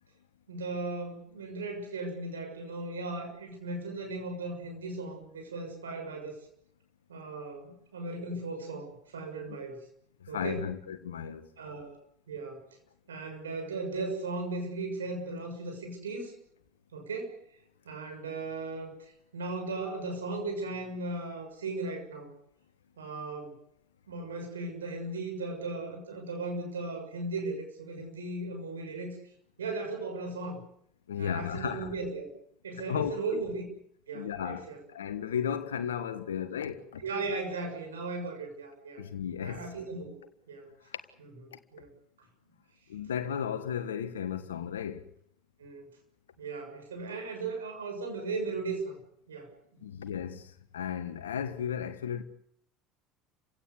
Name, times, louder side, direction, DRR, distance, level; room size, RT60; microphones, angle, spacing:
voice 1, 0.5-6.3 7.1-9.8 10.3-10.7 11.6-12.0 12.3-12.6 13.1-16.3 16.9-17.4 17.8-22.3 23.0-23.6 24.1-29.2 29.6-30.6 31.2-32.3 32.6-33.7 34.1-34.8 37.0-39.0 39.3-40.2 40.5-40.7 41.2-42.3 45.6-45.9 46.4-49.0 49.3-49.8 51.5-51.6, right 3 dB, 80° right, 6.7 m, -37 dB
voice 2, 10.3-11.5 31.1-31.9 32.9-33.4 34.1-37.0 39.0-39.6 42.9-45.0 49.8-52.2, left 8 dB, 80° left, 1.6 m, -34 dB
29.5 x 17.0 x 8.3 m
figure-of-eight pair, 65°, 0 cm